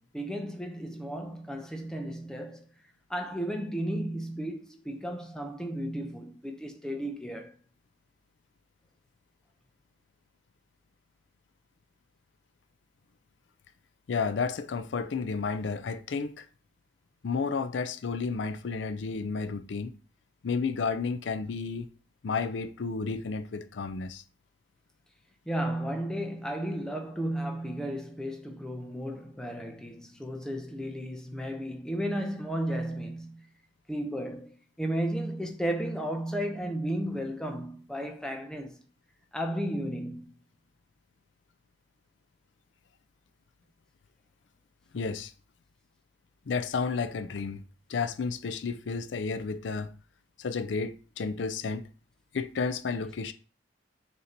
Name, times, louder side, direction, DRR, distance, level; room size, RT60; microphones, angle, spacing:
voice 1, 0.0-2.7 3.1-7.5 25.5-33.5 33.9-38.8 39.3-40.3, right 1 dB, 5° left, 0.7 m, -34 dB
voice 2, 14.1-16.5 17.2-19.9 20.4-21.9 22.2-24.2 44.9-45.3 46.5-47.6 47.9-49.9 50.4-51.9 52.3-53.3, left 4 dB, 80° left, 0.5 m, -32 dB
6.8 x 2.9 x 5.1 m
head